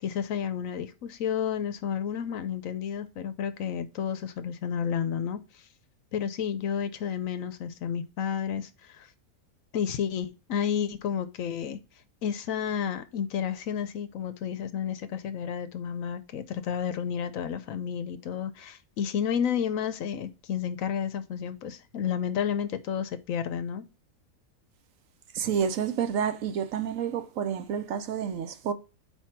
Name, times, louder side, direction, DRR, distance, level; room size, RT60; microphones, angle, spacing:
voice 1, 0.0-5.4 6.1-9.1 9.7-11.8 12.2-23.9, left 8 dB, 70° left, 1.0 m, -31 dB
voice 2, 25.3-28.7, right 8 dB, 65° right, 1.0 m, -29 dB
4.5 x 4.4 x 5.8 m
omnidirectional pair, 1.6 m